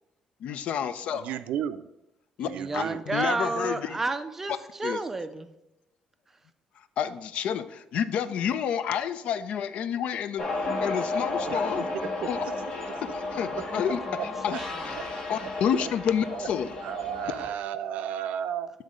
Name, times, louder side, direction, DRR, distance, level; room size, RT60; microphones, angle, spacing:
voice 1, 0.4-1.3 2.4-4.0 4.8-5.0 7.0-10.4 10.8-11.9 12.3-12.4 13.1-14.0 14.4-14.6 15.3-16.7, left 8 dB, 60° left, 13 dB, 0.4 m, -29 dB
voice 2, 1.1-1.9 2.5-3.0 11.5-11.7 11.9-12.5 12.9-13.0 13.5-14.6 14.9-15.1 15.4-15.5 15.8-15.9 16.2-18.7, right 10 dB, 85° right, 12 dB, 0.4 m, -34 dB
voice 3, 2.4-5.5 13.4-14.3 14.6-15.0, right 3 dB, 15° right, 10 dB, 0.4 m, -32 dB
sound 1, 10.4-17.5, left 3 dB, 40° left, 1.1 m, -33 dB
7.2 x 3.8 x 5.1 m, 0.88 s
cardioid pair, 175°, 2 cm